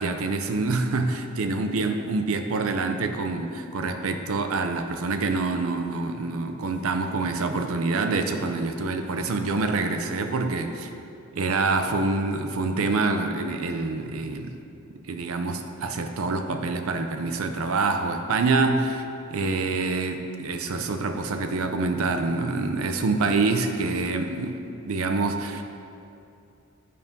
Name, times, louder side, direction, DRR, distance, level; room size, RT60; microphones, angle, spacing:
voice 1, 0.0-10.9 11.3-14.6 15.1-19.0 19.3-25.6, right 3 dB, 65° right, 6 dB, 0.5 m, -26 dB
9.5 x 5.3 x 3.6 m, 2.6 s
head